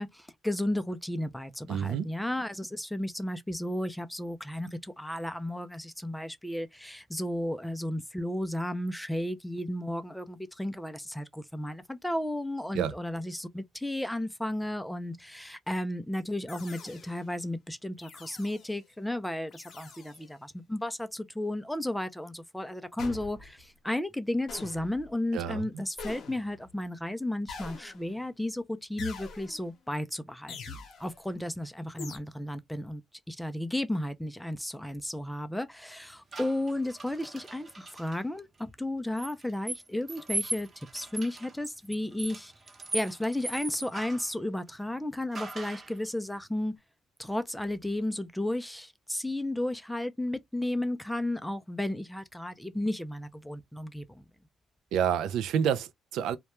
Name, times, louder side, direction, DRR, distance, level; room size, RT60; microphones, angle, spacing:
voice 1, 0.0-33.0 33.3-40.7 40.9-42.5 42.9-46.7 47.2-54.2, left 1 dB, 5° left, 0.4 m, -33 dB
voice 2, 1.7-2.1 12.7-12.9 25.3-25.6 54.9-56.4, right 8 dB, 85° right, 0.3 m, -28 dB
sound 1, 16.5-17.3 18.0-18.8 19.5-20.3 23.0-23.6 24.5-25.1 26.0-26.7 27.5-28.3 29.0-29.7 30.5-31.2 32.0-32.2, left 5 dB, 65° left, 0.7 m, -44 dB
sound 2, 36.3-38.2 39.2-44.3 45.3-46.0, right 2 dB, 35° right, 0.8 m, -39 dB
2.2 x 2.2 x 2.9 m
cardioid pair, 90°, 0 cm